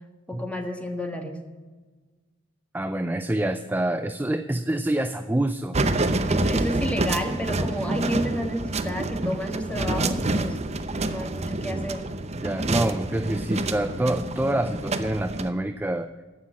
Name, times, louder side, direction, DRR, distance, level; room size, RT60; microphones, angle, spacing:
voice 1, 0.3-1.4 6.3-10.6 11.0-12.0, equal, 5° left, 4 dB, 1.6 m, -31 dB
voice 2, 2.7-5.8 12.4-16.1, right 1 dB, 10° right, 9 dB, 0.4 m, -26 dB
sound 1, 5.7-15.5, right 2 dB, 35° right, 0.8 m, -27 dB
15.0 x 5.9 x 9.6 m, 1.3 s
head